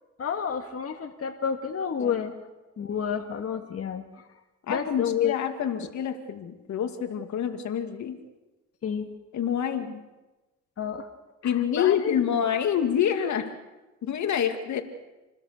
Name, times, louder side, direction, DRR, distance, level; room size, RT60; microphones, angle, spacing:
voice 1, 0.2-2.3 2.8-4.2 4.7-5.4 8.8-9.1 10.8-11.1 11.4-12.2, left 7 dB, 50° left, 4 dB, 2.2 m, -30 dB
voice 2, 4.7-8.2 9.3-10.0 11.4-13.5 14.0-14.8, left 8 dB, 70° left, 6 dB, 2.3 m, -27 dB
28.5 x 20.0 x 6.7 m, 1.1 s
cardioid pair, 90°, 30 cm